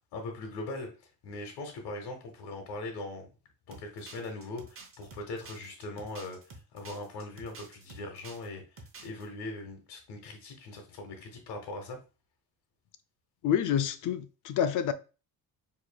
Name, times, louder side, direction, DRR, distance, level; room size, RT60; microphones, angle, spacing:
voice 1, 0.1-3.3 3.7-12.0, left 2 dB, 80° left, 1.1 m, -41 dB
sound 1, 3.7-8.5 8.8-9.3, right 3 dB, 35° right, 0.8 m, -49 dB
voice 2, 13.4-14.9, left 9 dB, 50° left, 0.5 m, -28 dB
4.7 x 3.0 x 2.3 m
cardioid pair, 125°, 39 cm